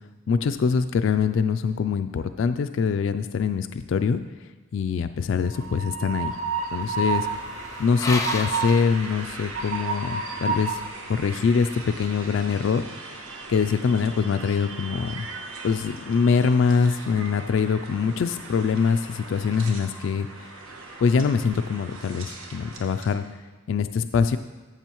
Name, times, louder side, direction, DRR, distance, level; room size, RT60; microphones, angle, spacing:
voice 1, 0.3-4.2 4.7-6.3 6.7-7.3 7.8-10.8 11.1-12.8 13.5-15.3 15.6-20.5 21.0-23.2 23.7-24.4, left 5 dB, 70° left, 9 dB, 0.3 m, -23 dB
sound 1, 5.4-9.8, left 3 dB, 15° left, 0.5 m, -35 dB
Train, 5.4-23.2, right 4 dB, 85° right, 1.2 m, -35 dB
13.5 x 6.9 x 3.0 m, 1.3 s
head